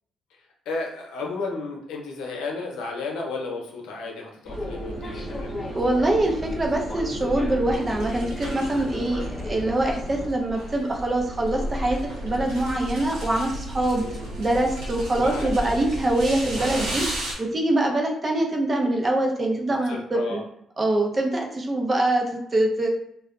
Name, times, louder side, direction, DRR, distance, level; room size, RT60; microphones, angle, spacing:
voice 1, 0.7-5.5 13.9-14.3 15.2-15.9 19.9-20.4, left 3 dB, 85° left, 0 dB, 0.7 m, -33 dB
sound 1, 4.5-10.3, left 1 dB, 30° left, 0.5 m, -35 dB
sound 2, 4.5-17.3, right 1 dB, 85° right, 0.9 m, -34 dB
voice 2, 5.7-14.0 14.4-20.4 20.8-22.9, right 1 dB, 30° right, 1 dB, 0.6 m, -24 dB
2.3 x 2.1 x 3.6 m, 0.77 s
cardioid pair, 90°, 0 cm